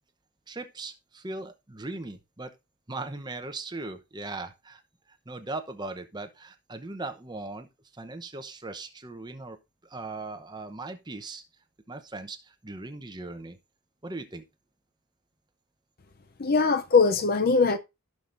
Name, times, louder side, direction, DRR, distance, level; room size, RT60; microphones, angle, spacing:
voice 1, 0.5-2.5 2.9-4.8 5.3-7.7 7.9-9.6 9.8-11.4 11.9-13.6 14.0-14.4, right 2 dB, 20° right, 0.8 m, -38 dB
voice 2, 16.4-17.8, left 4 dB, 45° left, 0.6 m, -21 dB
15.0 x 6.0 x 2.6 m
head